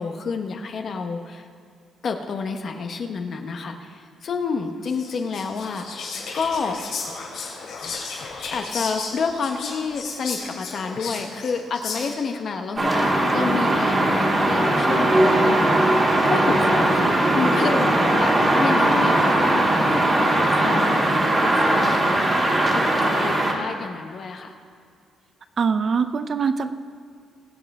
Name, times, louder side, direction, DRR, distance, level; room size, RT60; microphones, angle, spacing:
voice 1, 0.0-1.5 2.0-6.8 8.4-21.9 22.7-24.5, left 5 dB, 55° left, 5 dB, 1.1 m, -29 dB
Whispering, 4.9-12.3, left 4 dB, 80° left, 3.1 m, -34 dB
sound 1, 12.8-23.5, right 1 dB, 30° right, 2.3 m, -19 dB
voice 2, 25.6-26.7, right 5 dB, 45° right, 11 dB, 0.6 m, -23 dB
22.0 x 7.6 x 3.6 m, 2.3 s
cardioid pair, 90°, 0 cm